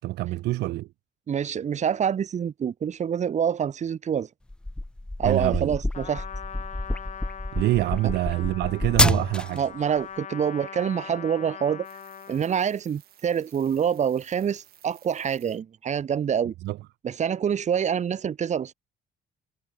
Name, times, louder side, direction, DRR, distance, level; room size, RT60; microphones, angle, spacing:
voice 1, 0.0-0.9 5.2-5.8 7.5-9.6 16.6-16.8, right 17 dB, 80° right, 3.8 m, -25 dB
voice 2, 1.3-4.3 5.2-6.2 9.5-11.9 12.3-16.5 17.0-18.7, right 8 dB, 45° right, 3.7 m, -26 dB
sound 1, 4.5-9.7, left 1 dB, 5° left, 0.4 m, -27 dB
Trumpet, 5.9-12.5, left 8 dB, 45° left, 6.6 m, -41 dB
sound 2, 11.8-15.6 16.0-16.1, right 12 dB, 65° right, 8.0 m, -55 dB
cardioid pair, 110°, 17 cm